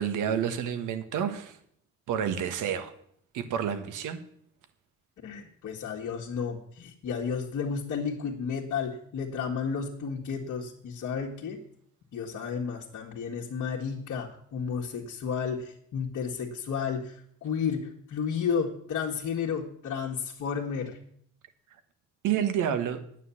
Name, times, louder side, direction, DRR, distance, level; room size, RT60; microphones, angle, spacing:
voice 1, 0.0-1.6 2.1-2.9 3.3-4.2 22.2-23.0, right 8 dB, 90° right, 9 dB, 1.4 m, -29 dB
voice 2, 5.2-11.6 12.1-21.0, left 6 dB, 70° left, -2 dB, 1.8 m, -32 dB
9.8 x 9.1 x 7.1 m, 0.65 s
cardioid pair, 90°, 30 cm